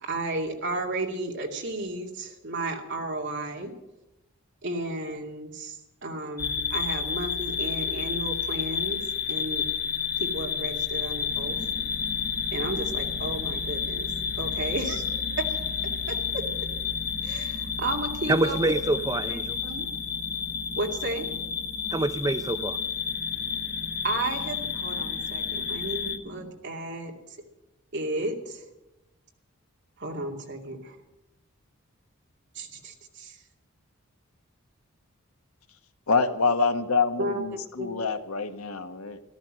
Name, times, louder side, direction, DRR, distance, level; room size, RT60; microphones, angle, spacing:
voice 1, 0.0-3.7 4.6-9.0 9.3-9.6 10.2-11.6 12.5-14.1 14.4-15.0 16.1-16.4 17.2-18.6 19.2-19.9 20.8-21.3 24.0-27.1 27.9-28.6 30.0-31.0 32.5-33.4 37.2-37.4 37.8-37.9, right 2 dB, 55° right, 2 dB, 2.4 m, -33 dB
sound 1, 6.4-26.2, left 7 dB, 45° left, 1.1 m, -30 dB
sound 2, 11.3-26.5, equal, 25° left, 3.0 m, -44 dB
voice 2, 18.3-19.6 21.9-22.8, right 2 dB, 15° right, 10 dB, 0.4 m, -26 dB
voice 3, 36.1-39.2, left 4 dB, 85° left, 8 dB, 1.3 m, -26 dB
14.0 x 13.5 x 7.5 m, 0.98 s
head